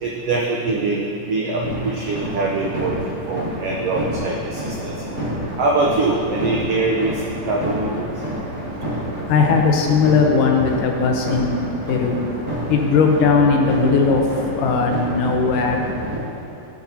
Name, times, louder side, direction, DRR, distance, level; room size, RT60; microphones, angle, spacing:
voice 1, 0.0-2.9 3.3-4.9 5.6-8.0, right 3 dB, 80° right, -2 dB, 1.3 m, -23 dB
sound 1, 1.6-16.2, right 1 dB, 30° right, 2.0 m, -28 dB
voice 2, 9.3-12.2 12.7-14.2 14.5-15.8, left 5 dB, 80° left, 2 dB, 2.4 m, -18 dB
12.5 x 8.2 x 2.8 m, 2.8 s
omnidirectional pair, 3.7 m